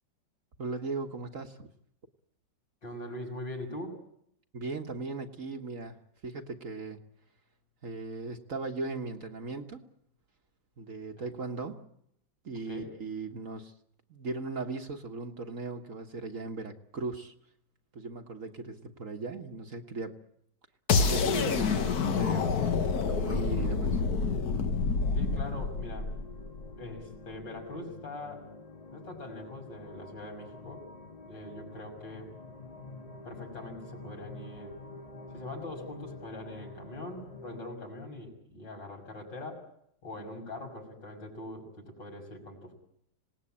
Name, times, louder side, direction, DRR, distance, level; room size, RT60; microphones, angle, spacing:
voice 1, 0.6-1.7 4.5-6.0 6.2-7.0 7.8-9.9 10.8-11.9 12.4-13.7 14.1-17.3 17.9-20.2 21.0-22.8 23.1-24.0, right 3 dB, 45° right, 5 dB, 1.7 m, -38 dB
voice 2, 2.8-4.0 11.2-11.3 12.7-12.9 25.1-26.1 26.8-28.5 28.9-30.9 31.2-32.3 33.2-34.8 35.3-39.6 40.0-42.7, left 1 dB, 75° left, 1 dB, 6.7 m, -42 dB
sound 1, 20.9-26.9, left 5 dB, 60° left, 1.7 m, -28 dB
sound 2, 24.6-37.6, left 2 dB, 25° left, 1.3 m, -48 dB
26.5 x 19.0 x 8.7 m, 0.73 s
omnidirectional pair, 2.0 m